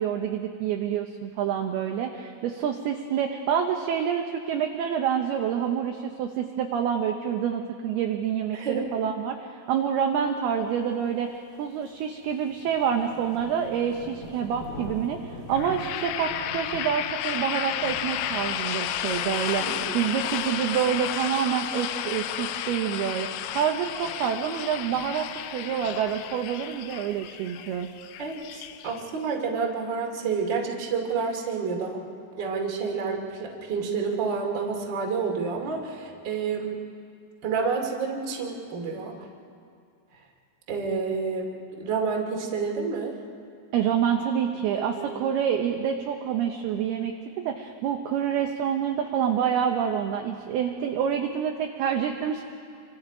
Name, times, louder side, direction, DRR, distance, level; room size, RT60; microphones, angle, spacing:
voice 1, 0.0-25.3 25.5-27.9 43.7-52.4, right 8 dB, 80° right, 3 dB, 2.3 m, -27 dB
voice 2, 8.5-8.8 19.6-20.0 28.2-32.0 32.4-36.7 37.4-39.3 40.7-43.1 44.7-45.2, right 5 dB, 35° right, 0 dB, 2.0 m, -29 dB
sound 1, 11.3-28.9, left 1 dB, 40° left, 1.5 m, -46 dB
sound 2, 15.5-29.3, left 11 dB, 90° left, 3.4 m, -32 dB
27.5 x 25.5 x 5.0 m, 2.3 s
omnidirectional pair, 5.8 m